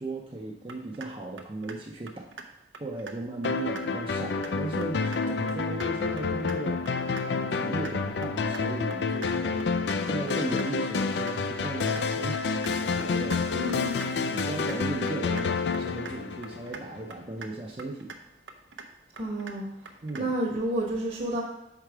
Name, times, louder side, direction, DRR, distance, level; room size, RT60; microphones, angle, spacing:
voice 1, 0.0-2.3 2.6-6.8 7.3-9.7 10.0-12.5 12.8-13.7 14.2-18.1 20.0-20.3, right 2 dB, 30° right, 0 dB, 0.5 m, -36 dB
sound 1, 0.7-1.1 1.4-1.8 2.1-2.4 2.7-3.1 3.4-3.8 4.1-4.5 4.8-5.2 5.5-5.9 6.2-6.6 6.9-7.2 7.5-7.9 8.2-8.6 8.9-9.3 9.6-10.0 10.3-10.7 11.0-11.3 11.6-12.0 12.3-12.7 13.0-13.4 13.7-14.1 14.4-14.8 15.1-15.5 15.7-16.1 16.4-16.8 17.1-17.5 17.8-18.2 18.5-18.9 19.2-19.5 19.9-20.2, right 5 dB, 80° right, 0.6 m, -43 dB
sound 2, 3.4-17.0, left 4 dB, 65° left, 0.4 m, -29 dB
voice 2, 13.5-14.0 19.2-19.7 20.1-21.4, right 1 dB, 50° right, -3 dB, 1.1 m, -30 dB
5.7 x 4.6 x 4.9 m, 0.89 s
head